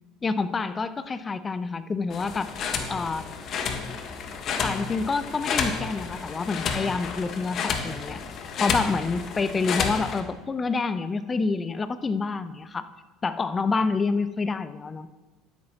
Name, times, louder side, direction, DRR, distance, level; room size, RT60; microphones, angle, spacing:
voice 1, 0.2-2.5 2.9-3.3 4.6-8.2 8.6-12.9 13.2-15.1, left 4 dB, 25° left, 12 dB, 0.7 m, -27 dB
sound 1, 2.1-10.2, left 6 dB, 50° left, 1.3 m, -31 dB
12.5 x 10.5 x 2.9 m, 1.2 s
hypercardioid pair, 65°, 0 cm